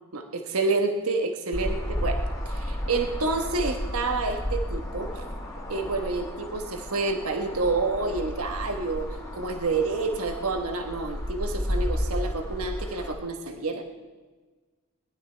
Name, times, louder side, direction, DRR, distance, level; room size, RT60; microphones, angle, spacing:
voice 1, 0.1-5.3 5.7-9.1 9.3-13.8, right 3 dB, 80° right, 5 dB, 1.2 m, -28 dB
sound 1, 1.5-13.1, equal, 15° left, 1.9 m, -32 dB
19.0 x 11.5 x 4.4 m, 1.3 s
head